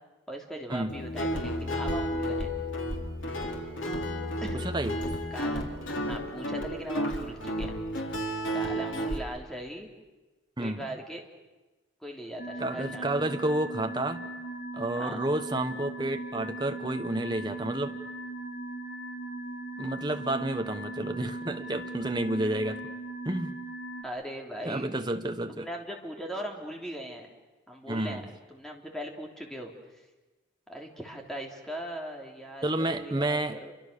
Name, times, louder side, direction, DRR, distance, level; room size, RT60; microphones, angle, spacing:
voice 1, 0.3-2.5 4.4-4.6 5.3-5.8 6.1-7.8 8.5-9.9 10.6-11.2 12.0-13.3 14.9-15.2 24.0-24.9 25.5-27.3 27.7-29.7 30.7-33.7, equal, ahead, 3.3 m, -39 dB
Guitar, 0.9-9.2, equal, 85° left, 3.6 m, -32 dB
voice 2, 4.5-5.0 10.6-10.9 12.6-14.3 14.7-18.0 19.8-22.9 23.2-23.6 24.6-25.7 27.9-28.2 32.6-33.6, right 1 dB, 25° right, 1.3 m, -30 dB
sound 1, 12.4-24.0, right 2 dB, 45° left, 5.6 m, -39 dB
29.5 x 25.0 x 6.9 m
head